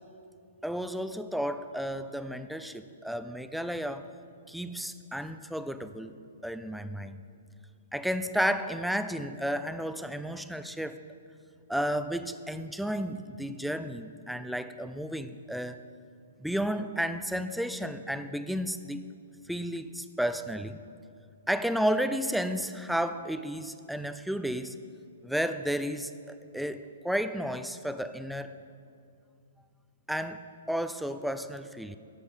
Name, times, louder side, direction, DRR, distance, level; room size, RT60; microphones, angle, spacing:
voice 1, 0.6-4.1 4.5-7.2 7.9-11.0 11.7-15.8 16.4-19.1 19.5-20.8 21.5-24.8 25.2-28.5 30.1-32.0, equal, ahead, 11 dB, 0.4 m, -32 dB
13.5 x 5.4 x 6.5 m, 2.4 s
hypercardioid pair, 140°, 0 cm